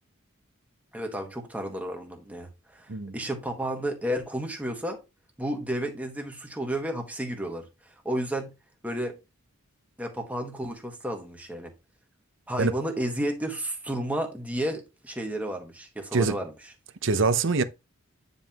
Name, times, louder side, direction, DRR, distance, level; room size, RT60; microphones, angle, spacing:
voice 1, 0.9-5.0 5.4-7.6 8.0-8.5 8.8-9.2 10.0-11.7 12.5-16.5, right 1 dB, 5° right, 1.6 m, -32 dB
voice 2, 17.0-17.6, right 4 dB, 60° right, 0.8 m, -24 dB
9.4 x 5.5 x 3.0 m
head